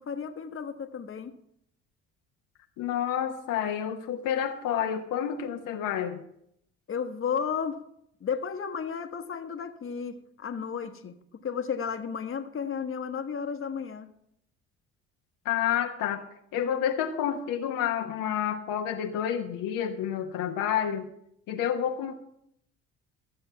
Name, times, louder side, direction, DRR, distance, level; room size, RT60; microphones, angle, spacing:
voice 1, 0.0-1.3 6.9-7.8 8.2-11.2 11.4-14.1, left 6 dB, 35° left, 8 dB, 1.3 m, -33 dB
voice 2, 2.8-6.2 15.4-16.3 16.5-21.1 21.5-22.1, left 9 dB, 60° left, 4 dB, 1.1 m, -29 dB
13.5 x 7.8 x 5.7 m, 0.74 s
hypercardioid pair, 50°, 36 cm